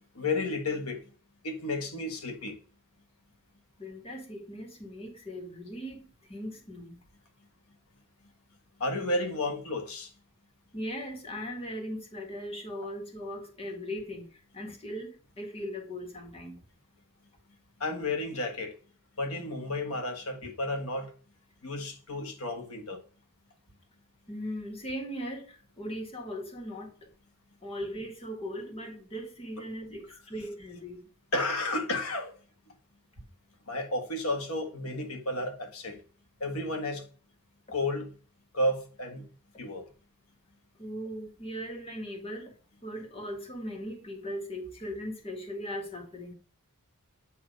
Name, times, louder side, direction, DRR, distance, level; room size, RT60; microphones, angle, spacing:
voice 1, 0.1-1.0 1.4-2.6 8.8-10.1 17.8-18.7 19.2-21.1 21.6-23.0 31.3-32.3 33.7-36.0 36.4-37.1 37.7-38.1 38.5-39.3 39.6-39.8, left 2 dB, 80° left, 1.5 m, -32 dB
voice 2, 3.8-7.0 10.7-16.6 24.3-26.9 27.6-31.0 40.8-42.5 42.8-46.3, equal, 25° left, 1.6 m, -39 dB
8.5 x 2.9 x 5.2 m
head